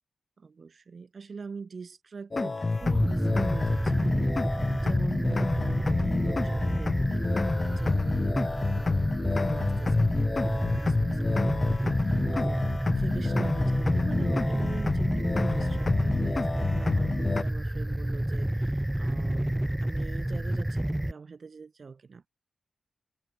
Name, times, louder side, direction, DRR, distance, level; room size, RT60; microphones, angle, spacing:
voice 1, 0.4-22.3, right 5 dB, 55° right, 5.6 m, -44 dB
sound 1, 2.3-17.4, left 3 dB, 40° left, 1.3 m, -28 dB
sound 2, 2.8-21.1, right 1 dB, 10° right, 1.7 m, -29 dB
cardioid pair, 50°, 0 cm